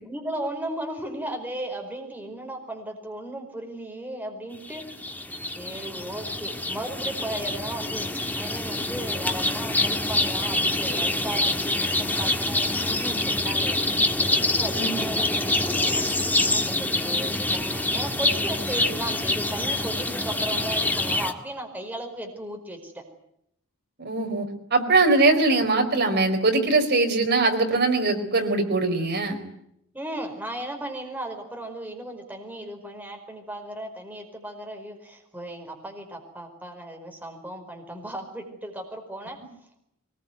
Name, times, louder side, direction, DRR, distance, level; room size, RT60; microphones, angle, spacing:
voice 1, 0.0-4.8 5.6-8.1 8.4-13.8 14.2-23.0 29.9-39.4, right 1 dB, 10° right, 3 dB, 5.1 m, -36 dB
sound 1, 4.6-21.3, left 2 dB, 10° left, 1.8 m, -26 dB
voice 2, 24.0-29.4, right 3 dB, 50° right, 5 dB, 4.7 m, -22 dB
23.5 x 21.0 x 9.3 m, 0.75 s
head